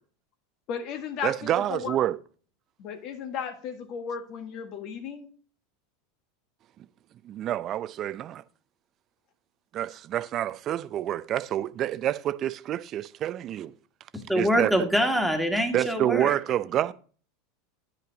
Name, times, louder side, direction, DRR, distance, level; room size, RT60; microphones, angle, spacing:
voice 1, 0.7-2.0 2.8-5.3, left 7 dB, 55° left, 1.6 m, -35 dB
voice 2, 1.2-2.2 7.2-8.4 9.7-13.7 14.3-14.7 15.7-16.9, right 12 dB, 45° right, 0.5 m, -28 dB
voice 3, 14.3-16.3, equal, ahead, 1.8 m, -24 dB
10.0 x 5.7 x 3.9 m
hypercardioid pair, 95°, 0 cm